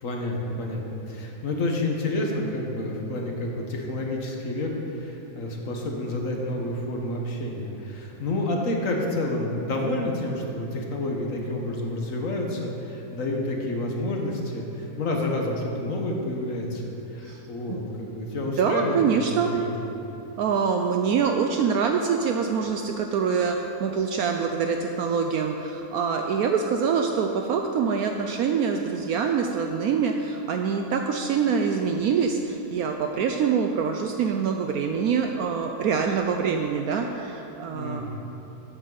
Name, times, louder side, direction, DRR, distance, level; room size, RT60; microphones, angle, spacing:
voice 1, 0.0-19.2 19.5-20.0 37.7-38.1, left 1 dB, 55° left, 0 dB, 1.7 m, -29 dB
voice 2, 18.4-19.5 20.4-38.1, right 6 dB, 70° right, 4 dB, 1.0 m, -25 dB
14.5 x 8.9 x 4.0 m, 2.9 s
omnidirectional pair, 1.7 m